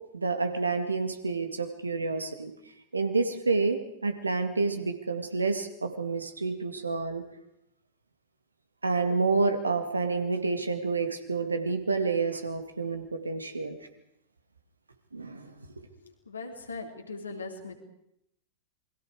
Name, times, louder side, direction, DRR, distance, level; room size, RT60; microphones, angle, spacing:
voice 1, 0.1-2.5 2.9-7.3 8.8-13.8 15.1-15.5, right 4 dB, 80° right, 7 dB, 2.2 m, -29 dB
voice 2, 16.0-17.7, left 3 dB, 75° left, 2 dB, 3.6 m, -40 dB
28.0 x 22.0 x 4.9 m, 0.78 s
figure-of-eight pair, 90°, 0 cm